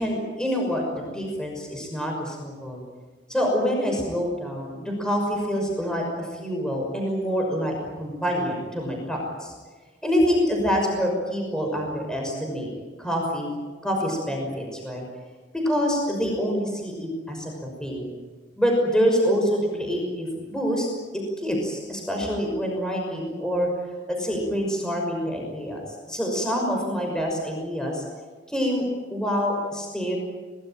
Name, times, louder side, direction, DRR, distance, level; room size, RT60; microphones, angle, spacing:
voice 1, 0.0-2.8 3.3-9.5 10.0-12.7 13.0-13.5 13.8-15.0 15.5-18.1 18.6-20.9 21.4-23.7 24.1-28.0 28.5-30.2, equal, 5° left, 0 dB, 6.0 m, -26 dB
28.0 x 19.0 x 9.0 m, 1.4 s
head